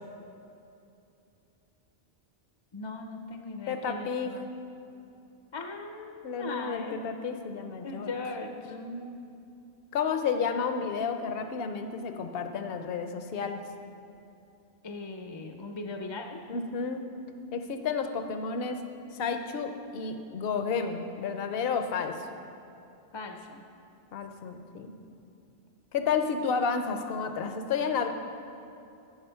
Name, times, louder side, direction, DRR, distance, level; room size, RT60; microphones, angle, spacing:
voice 1, 2.7-4.5 5.5-7.0 7.8-8.7 14.8-16.4 23.1-23.6, left 3 dB, 35° left, 4 dB, 0.5 m, -39 dB
voice 2, 3.7-4.3 6.2-8.1 8.7-9.2 9.9-13.6 16.5-17.1 17.5-18.8 19.1-22.3 24.1-24.9 25.9-28.1, left 5 dB, 65° left, 7 dB, 0.9 m, -31 dB
14.5 x 4.9 x 5.7 m, 2.7 s
omnidirectional pair, 1.1 m